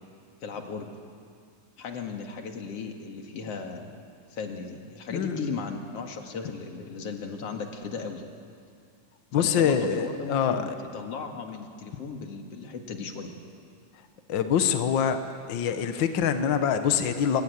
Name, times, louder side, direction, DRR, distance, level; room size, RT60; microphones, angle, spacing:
voice 1, 0.4-0.9 1.8-3.9 4.3-8.2 9.3-13.3, left 5 dB, 50° left, 3 dB, 2.8 m, -36 dB
voice 2, 5.1-5.4 9.3-10.8 14.3-15.2 15.5-17.4, left 8 dB, 70° left, 8 dB, 1.1 m, -25 dB
22.5 x 19.0 x 9.6 m, 2.3 s
omnidirectional pair, 3.7 m